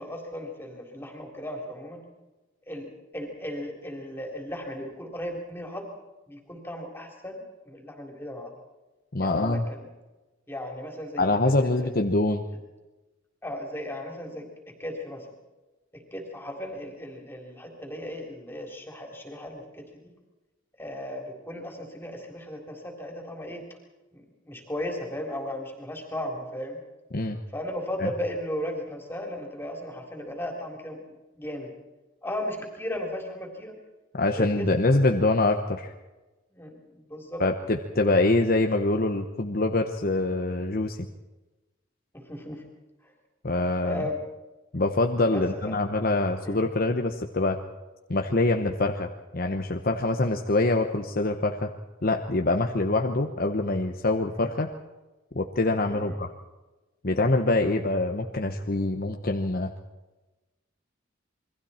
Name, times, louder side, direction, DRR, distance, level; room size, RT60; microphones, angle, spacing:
voice 1, 0.0-2.0 2.7-2.9 3.1-5.9 6.3-8.5 9.2-9.9 10.5-11.9 13.4-15.3 15.9-20.1 20.8-23.6 24.1-26.8 27.5-31.0 31.4-31.7 32.2-33.7 34.4-35.0 36.5-37.4 42.1-42.6 43.8-44.2 45.3-45.4 46.4-46.6 55.9-56.1, left 1 dB, 10° left, 1 dB, 3.6 m, -36 dB
voice 2, 9.1-9.6 11.2-12.4 27.1-27.4 28.0-28.1 34.2-35.9 37.4-41.0 43.4-44.0 44.7-47.6 48.1-51.7 52.0-54.7 55.3-56.3 57.0-59.7, left 2 dB, 45° left, 4 dB, 1.1 m, -25 dB
28.0 x 22.0 x 4.4 m, 1.1 s
head